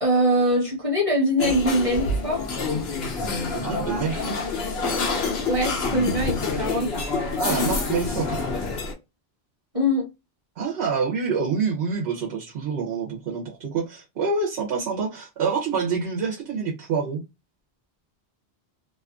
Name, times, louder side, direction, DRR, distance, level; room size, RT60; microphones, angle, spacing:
voice 1, 0.0-2.4 5.5-6.9 9.7-10.0, equal, 35° right, 0.9 m, -23 dB
sound 1, 1.4-8.9, left 3 dB, 75° left, 0.9 m, -27 dB
voice 2, 3.5-4.5 7.4-8.4 10.6-17.2, right 5 dB, 75° right, 1.0 m, -27 dB
2.6 x 2.4 x 2.3 m
omnidirectional pair, 1.1 m